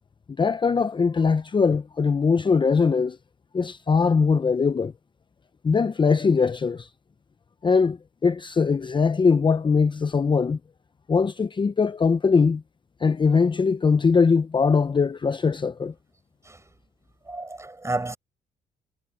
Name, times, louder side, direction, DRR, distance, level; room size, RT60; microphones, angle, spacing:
voice 1, 0.4-3.2 3.5-4.9 5.6-6.9 7.6-10.6 11.1-12.6 13.0-15.9, left 5 dB, 30° left, 0.8 m, -21 dB
voice 2, 17.3-18.2, right 2 dB, 15° right, 6.0 m, -31 dB
cardioid pair, 80°, 17 cm